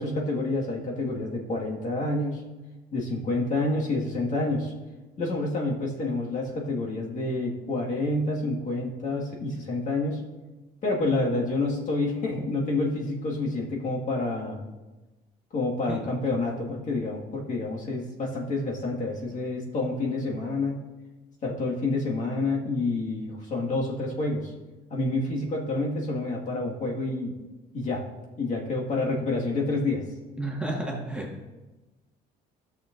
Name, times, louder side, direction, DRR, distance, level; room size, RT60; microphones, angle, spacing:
voice 1, 0.0-2.4 2.9-4.7 5.2-10.2 10.8-14.6 15.5-20.8 21.4-24.5 24.9-27.3 27.7-28.0 28.4-30.0, left 2 dB, 50° left, -2 dB, 1.8 m, -28 dB
voice 2, 30.4-31.3, right 1 dB, 5° right, -2 dB, 1.5 m, -31 dB
13.5 x 6.7 x 2.5 m, 1.1 s
cardioid pair, 110°, 17 cm